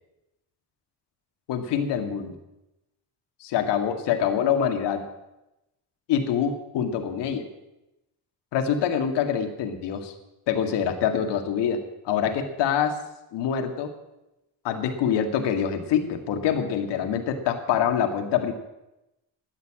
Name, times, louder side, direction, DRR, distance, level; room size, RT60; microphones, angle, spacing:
voice 1, 1.5-2.3 3.4-5.1 6.1-7.4 8.5-10.1 10.5-13.0 13.3-13.9 14.6-18.5, left 8 dB, 80° left, 6 dB, 2.0 m, -25 dB
12.5 x 11.0 x 7.5 m, 0.93 s
supercardioid pair, 70°, 41 cm